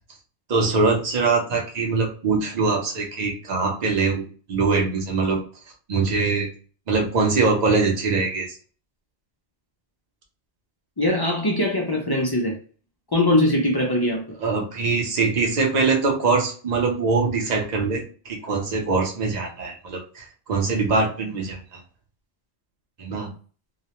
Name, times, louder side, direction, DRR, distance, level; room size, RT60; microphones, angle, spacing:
voice 1, 0.5-4.2 4.5-5.4 5.9-6.5 6.9-8.6 14.4-21.8 23.0-23.3, right 4 dB, 45° right, 0 dB, 0.7 m, -23 dB
voice 2, 11.0-12.5 13.1-14.2, left 1 dB, 40° left, -1 dB, 0.3 m, -21 dB
2.3 x 2.0 x 2.9 m, 0.40 s
omnidirectional pair, 1.1 m